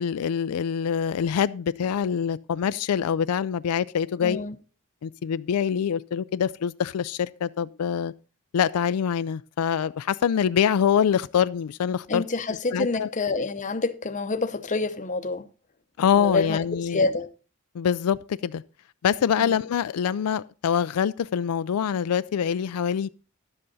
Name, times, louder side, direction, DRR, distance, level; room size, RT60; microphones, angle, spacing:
voice 1, 0.0-4.4 5.0-8.1 8.5-12.2 12.7-13.1 16.0-17.0 17.7-18.6 19.0-23.1, left 8 dB, 85° left, 0.4 m, -25 dB
voice 2, 4.2-4.6 12.1-15.5 16.1-17.3 19.4-19.6, left 3 dB, 35° left, 0.7 m, -27 dB
11.5 x 7.8 x 4.1 m
head